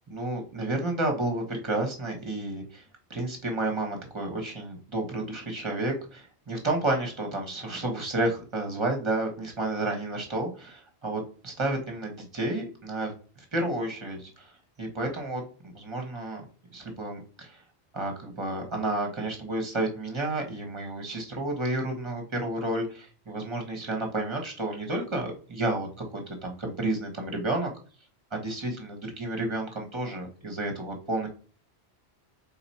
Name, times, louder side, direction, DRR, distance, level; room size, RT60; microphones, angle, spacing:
voice 1, 0.1-2.8 3.1-14.5 14.8-16.4 16.7-17.6 17.9-27.7 28.3-31.3, right 2 dB, 25° right, 2 dB, 1.1 m, -31 dB
4.2 x 2.9 x 4.1 m, 0.39 s
omnidirectional pair, 1.1 m